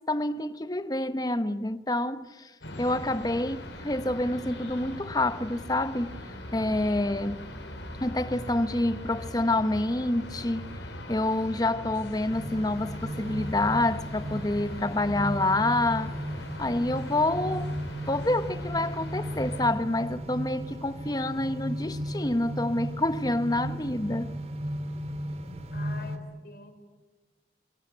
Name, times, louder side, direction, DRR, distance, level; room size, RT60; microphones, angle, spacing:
voice 1, 0.0-2.5 2.8-6.1 6.5-7.5 8.0-10.7 11.1-16.1 16.6-17.7 18.1-24.3, left 2 dB, 20° left, 0.9 m, -27 dB
sound 1, 2.6-19.7, left 1 dB, 90° left, 6.4 m, -40 dB
sound 2, 12.3-26.2, equal, 35° right, 2.2 m, -35 dB
voice 2, 25.7-26.7, left 2 dB, 55° left, 4.6 m, -45 dB
25.0 x 22.0 x 9.0 m
head